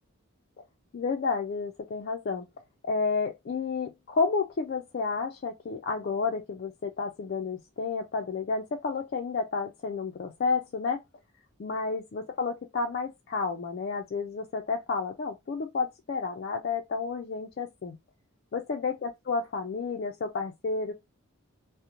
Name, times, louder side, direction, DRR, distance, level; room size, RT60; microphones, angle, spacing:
voice 1, 0.9-2.4 2.8-11.0 11.6-18.0 18.5-20.9, left 4 dB, 45° left, 0.3 m, -31 dB
2.5 x 2.0 x 2.9 m
head